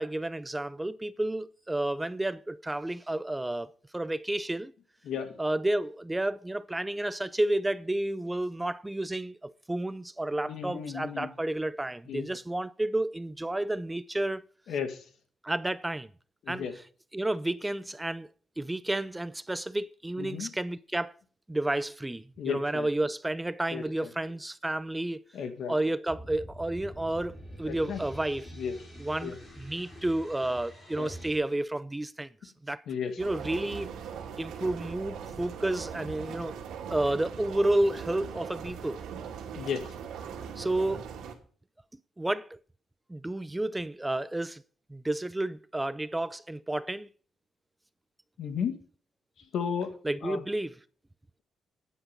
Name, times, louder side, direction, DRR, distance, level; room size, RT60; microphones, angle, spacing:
voice 1, 0.0-4.7 5.4-14.4 15.4-16.1 16.5-16.7 17.1-18.3 18.6-21.1 21.5-25.2 25.7-28.5 29.0-32.8 33.2-33.9 34.4-36.6 36.9-39.0 40.6-41.1 42.2-42.6 43.1-44.6 44.9-47.1 50.0-50.8, right 1 dB, 10° right, 0.4 m, -31 dB
voice 2, 10.5-11.3 12.1-12.2 14.7-15.0 16.5-16.7 20.2-20.5 22.4-22.9 23.7-23.8 25.3-25.8 27.7-28.0 28.6-28.8 29.2-29.4 31.0-31.1 32.9-33.1 39.6-39.8 48.4-48.7 49.5-49.9 50.2-50.4, left 7 dB, 65° left, 2.1 m, -33 dB
sound 1, 26.1-31.4, equal, 15° left, 6.1 m, -46 dB
sound 2, 33.2-41.3, right 7 dB, 85° right, 2.6 m, -40 dB
9.9 x 9.6 x 5.3 m
cardioid pair, 130°, 0 cm